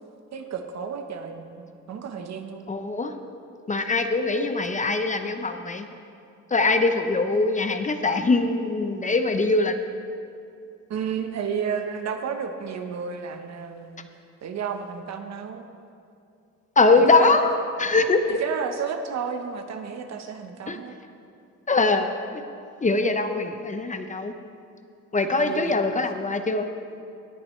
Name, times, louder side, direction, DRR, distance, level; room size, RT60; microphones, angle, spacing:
voice 1, 0.3-2.6 10.9-14.1 14.4-15.6 17.0-17.5 18.4-21.0 25.4-25.7, right 6 dB, 60° right, 6 dB, 1.0 m, -32 dB
voice 2, 2.7-3.1 3.7-5.9 6.5-9.7 16.8-17.5 17.8-18.4 20.7-20.8 21.7-22.4 22.8-24.3 25.1-26.7, left 3 dB, 25° left, 7 dB, 0.7 m, -22 dB
18.0 x 8.7 x 3.2 m, 2.5 s
cardioid pair, 90°, 30 cm